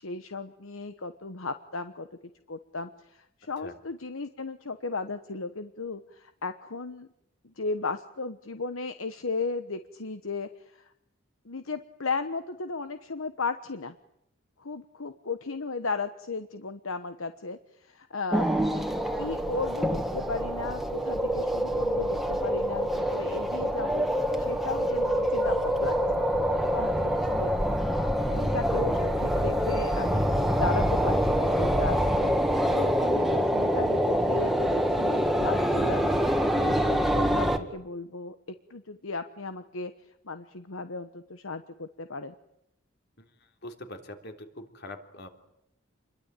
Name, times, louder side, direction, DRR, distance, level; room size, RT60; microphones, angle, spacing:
voice 1, 0.0-2.1 2.5-7.1 7.6-10.9 11.4-13.9 14.6-18.6 19.1-24.1 24.4-26.3 26.7-27.8 28.2-30.3 30.6-32.3 32.7-36.1 36.6-38.4 38.7-39.9 40.2-42.3, left 4 dB, 75° left, 9 dB, 1.2 m, -35 dB
sound 1, 18.3-37.6, equal, ahead, 1.9 m, -26 dB
voice 2, 43.6-45.3, left 1 dB, 55° left, 5 dB, 3.4 m, -43 dB
28.0 x 22.0 x 9.1 m, 0.80 s
head